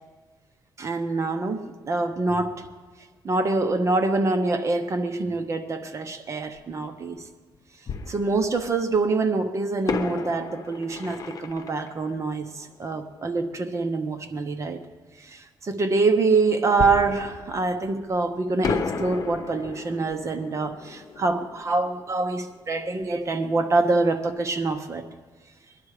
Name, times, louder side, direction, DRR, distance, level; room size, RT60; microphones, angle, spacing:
voice 1, 0.8-2.7 3.2-7.2 8.1-12.5 12.8-14.8 15.3-25.0, right 3 dB, 40° right, 7 dB, 1.1 m, -25 dB
Fireworks, 6.6-6.7 7.9-9.0 9.9-13.3 16.8-18.2 18.6-23.2 23.4-23.5 24.0-24.3, left 5 dB, 50° left, 1.0 m, -34 dB
21.0 x 11.5 x 5.0 m, 1.4 s
cardioid pair, 130°, 8 cm